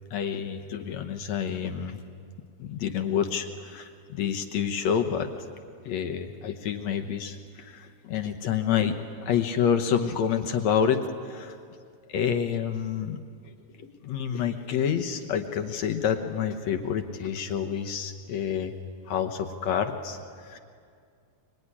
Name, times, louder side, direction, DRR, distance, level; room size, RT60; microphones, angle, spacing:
voice 1, 0.1-2.0 2.6-5.3 5.8-9.0 9.2-11.6 12.1-13.2 13.8-18.7 19.1-20.2 20.4-20.6, left 8 dB, 70° left, 6 dB, 2.3 m, -28 dB
24.5 x 23.5 x 9.9 m, 2.2 s
omnidirectional pair, 3.4 m